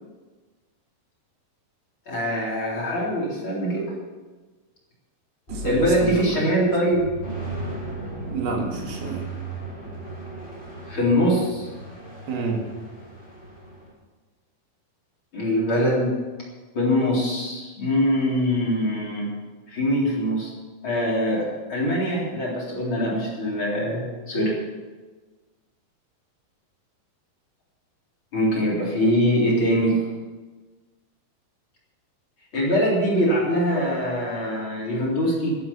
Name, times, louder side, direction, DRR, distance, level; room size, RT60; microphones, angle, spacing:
voice 1, 2.1-3.9 5.6-7.0 10.9-11.7 15.3-16.1 16.7-19.3 19.7-20.5 20.8-24.5 28.3-30.0 32.5-35.5, equal, 35° left, -4 dB, 4.4 m, -23 dB
sound 1, 5.5-6.5 6.9-13.9, right 2 dB, 15° left, 5.5 m, -36 dB
voice 2, 5.5-6.4 6.7-6.8 8.3-9.3 12.3-12.6, right 4 dB, 75° right, 1 dB, 3.8 m, -29 dB
12.5 x 11.5 x 7.4 m, 1.3 s
omnidirectional pair, 4.3 m